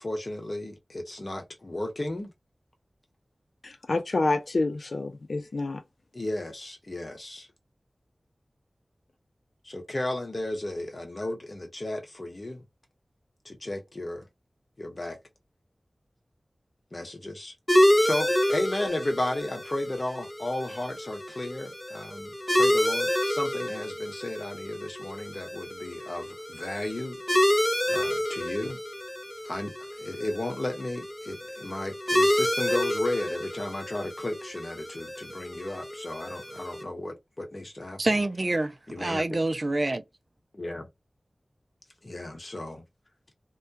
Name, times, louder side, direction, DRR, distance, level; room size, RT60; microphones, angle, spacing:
voice 1, 0.0-2.3 6.1-7.5 9.6-12.6 13.4-14.2 14.8-15.2 16.9-27.5 27.9-28.8 29.4-38.0 38.9-39.2 40.5-40.9 42.0-42.8, left 1 dB, 45° left, 1.0 m, -34 dB
voice 2, 3.6-5.8, left 2 dB, 75° left, 0.4 m, -28 dB
sound 1, 17.7-36.8, equal, 20° left, 0.6 m, -28 dB
voice 3, 38.0-40.0, right 2 dB, 45° right, 0.4 m, -27 dB
2.3 x 2.1 x 2.7 m
wide cardioid pair, 60°, 0 cm